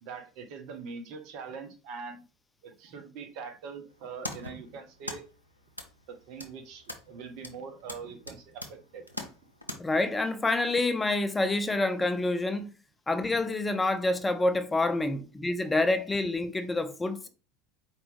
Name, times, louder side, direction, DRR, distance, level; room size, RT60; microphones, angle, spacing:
voice 1, 0.0-2.2 2.6-5.3 6.1-9.0, right 5 dB, 55° right, 0.8 m, -43 dB
sound 1, 3.9-9.8, left 1 dB, 90° left, 0.5 m, -43 dB
voice 2, 9.8-12.7 13.1-17.3, left 2 dB, 15° left, 0.4 m, -27 dB
4.3 x 2.6 x 3.3 m
figure-of-eight pair, 70°, 0 cm